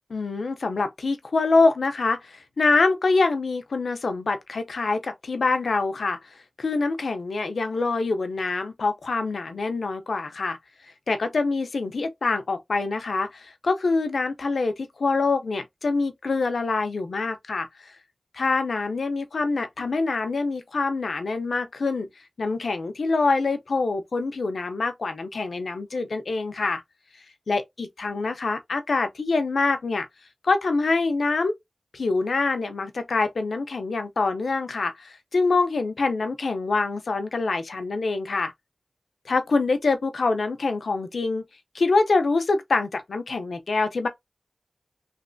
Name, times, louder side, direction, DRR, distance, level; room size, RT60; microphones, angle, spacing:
voice 1, 0.1-6.2 6.6-10.6 11.1-17.7 18.3-22.1 22.4-26.8 27.5-30.1 30.4-31.5 31.9-38.5 39.3-41.4 41.7-44.1, left 3 dB, 85° left, 0.5 m, -25 dB
3.2 x 2.9 x 2.5 m
wide cardioid pair, 65°, 0 cm